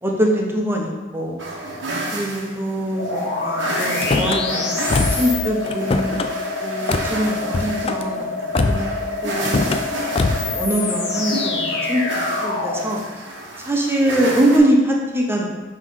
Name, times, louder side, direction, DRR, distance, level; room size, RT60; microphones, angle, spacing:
voice 1, 0.0-1.4 2.1-8.9 9.2-9.6 10.4-13.0 13.6-15.4, right 1 dB, 15° right, -1 dB, 0.8 m, -23 dB
sound 1, 1.4-14.6, right 2 dB, 80° right, 1.0 m, -31 dB
sound 2, 3.0-12.9, left 3 dB, 65° left, 1.0 m, -26 dB
Car / Slam, 3.9-4.4 4.9-5.3 5.6-6.3 6.9-7.1 7.5-8.0 8.5-9.0 9.4-9.8 10.1-10.5, left 3 dB, 30° left, 0.3 m, -22 dB
5.5 x 3.2 x 5.4 m, 1.2 s
head